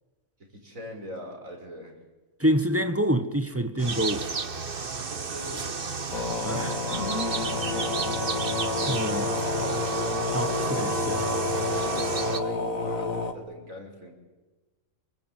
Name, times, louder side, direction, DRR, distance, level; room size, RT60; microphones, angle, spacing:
voice 1, 0.4-2.0 5.1-5.9 12.1-14.1, equal, 85° right, 5.9 m, -42 dB
voice 2, 2.4-4.3 6.4-6.8 8.9-9.3 10.3-11.3, equal, 10° right, 1.3 m, -27 dB
sound 1, 3.8-12.4, right 5 dB, 45° right, 1.5 m, -31 dB
sound 2, 6.1-13.3, left 3 dB, 90° left, 2.2 m, -29 dB
26.5 x 23.5 x 9.3 m
omnidirectional pair, 1.4 m